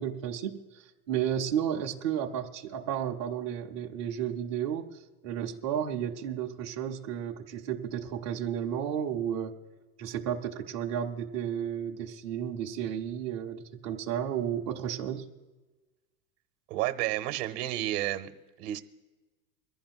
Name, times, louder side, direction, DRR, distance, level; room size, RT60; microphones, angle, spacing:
voice 1, 0.0-9.6 10.0-15.3, right 9 dB, 20° right, 0 dB, 0.3 m, -33 dB
voice 2, 16.7-18.3 18.6-18.8, right 15 dB, 50° right, 8 dB, 0.9 m, -31 dB
23.0 x 15.0 x 2.3 m, 1.2 s
supercardioid pair, 170°, 47 cm